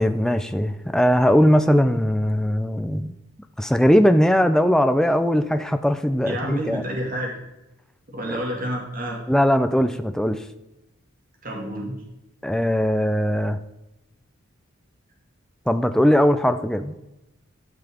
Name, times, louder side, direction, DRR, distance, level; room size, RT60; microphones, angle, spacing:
voice 1, 0.0-3.1 3.6-6.8 9.3-10.4 12.4-13.6 15.7-16.9, equal, 5° left, 9 dB, 0.4 m, -19 dB
voice 2, 6.3-7.3 8.1-9.2 11.4-12.0, equal, 40° right, -1 dB, 1.9 m, -29 dB
12.5 x 5.8 x 3.6 m, 0.95 s
head